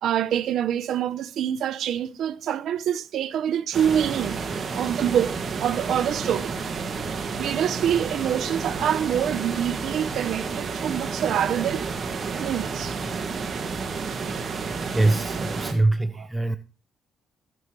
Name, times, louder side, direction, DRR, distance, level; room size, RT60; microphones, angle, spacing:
voice 1, 0.0-4.4 4.7-6.5 7.4-11.9 12.4-13.0 14.0-14.4 15.4-15.5 16.1-16.3, right 9 dB, 75° right, 0.8 m, -26 dB
sound 1, 3.7-15.7, right 5 dB, 50° right, 2.1 m, -30 dB
voice 2, 14.9-16.6, right 2 dB, 15° right, 0.7 m, -23 dB
15.0 x 10.5 x 3.2 m
cardioid pair, 90°, 0 cm